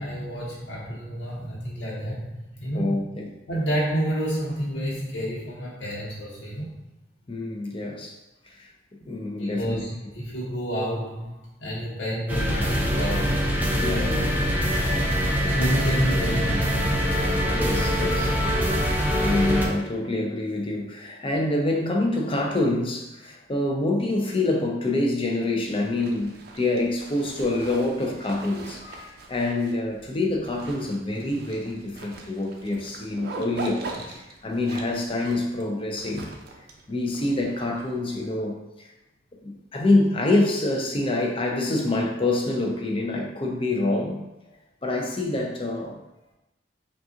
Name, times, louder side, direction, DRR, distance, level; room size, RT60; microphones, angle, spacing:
voice 1, 0.0-3.1 3.5-6.8 9.3-14.5 15.4-17.4 28.8-29.3, equal, 80° left, -6 dB, 1.1 m, -30 dB
voice 2, 2.7-3.3 7.3-8.1 8.5-8.7 9.0-9.8 13.8-14.0 17.5-18.3 19.2-28.8 29.3-36.3 36.9-38.9 39.4-44.2 44.8-46.0, left 2 dB, 30° left, 0 dB, 0.6 m, -26 dB
sound 1, 12.3-19.7, equal, 10° right, 0.6 m, -23 dB
Zipper (clothing), 25.7-38.2, right 2 dB, 60° right, 0.6 m, -41 dB
5.3 x 2.4 x 2.8 m, 0.96 s
head